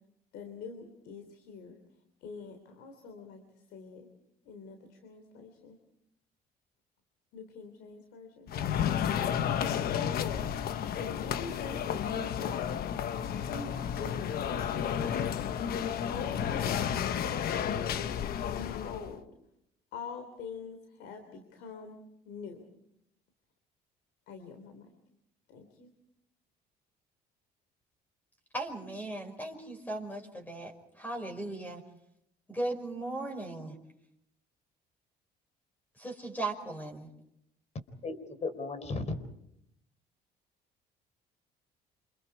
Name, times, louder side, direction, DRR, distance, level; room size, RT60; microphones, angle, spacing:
voice 1, 0.3-1.8 2.2-4.0 4.4-5.8 7.3-8.5 9.9-10.5 10.9-12.9 13.5-15.4 16.1-18.1 18.6-19.2 19.9-22.0 22.2-22.6 24.3-24.9 25.5-25.9, left 5 dB, 90° left, 7 dB, 3.4 m, -44 dB
sound 1, 8.5-19.1, left 9 dB, 65° left, 1.2 m, -32 dB
voice 2, 28.5-30.7 31.0-31.8 32.5-33.8 36.0-37.1, right 2 dB, 10° left, 4 dB, 5.7 m, -37 dB
voice 3, 38.0-39.1, left 3 dB, 40° left, 11 dB, 4.1 m, -35 dB
28.5 x 27.0 x 4.8 m, 0.76 s
cardioid pair, 110°, 17 cm